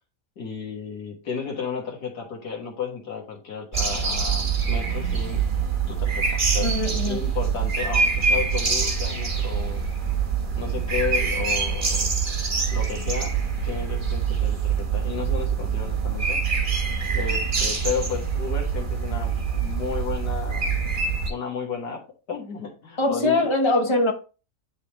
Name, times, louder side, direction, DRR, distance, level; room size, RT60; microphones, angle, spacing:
voice 1, 0.4-5.4 5.9-6.7 7.0-9.9 10.6-12.1 12.7-13.4 13.6-16.5 17.1-20.7 21.3-23.5, left 6 dB, 80° left, 2.1 m, -33 dB
sound 1, 3.7-21.3, right 5 dB, 35° right, 1.2 m, -25 dB
voice 2, 6.6-7.2 23.0-24.1, left 2 dB, 25° left, 0.6 m, -22 dB
10.0 x 3.4 x 3.1 m
omnidirectional pair, 1.7 m